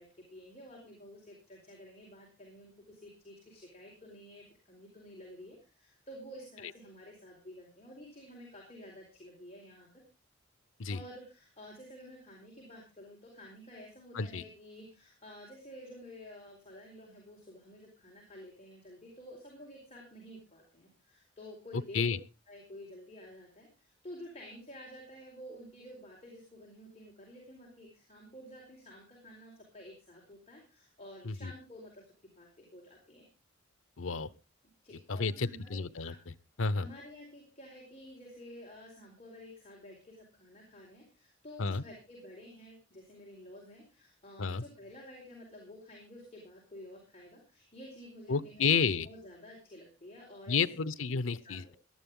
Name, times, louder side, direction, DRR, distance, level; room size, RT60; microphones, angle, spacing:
voice 1, 0.0-10.0 10.9-22.1 22.5-33.3 34.8-36.2 36.8-50.6 51.4-51.8, equal, 35° left, -2 dB, 4.5 m, -51 dB
voice 2, 21.7-22.2 31.2-31.5 34.0-34.3 35.1-36.1 36.6-36.9 41.6-41.8 44.4-44.6 48.3-49.1 50.5-51.6, left 5 dB, 90° left, 17 dB, 0.7 m, -31 dB
18.0 x 12.5 x 3.7 m, 0.31 s
head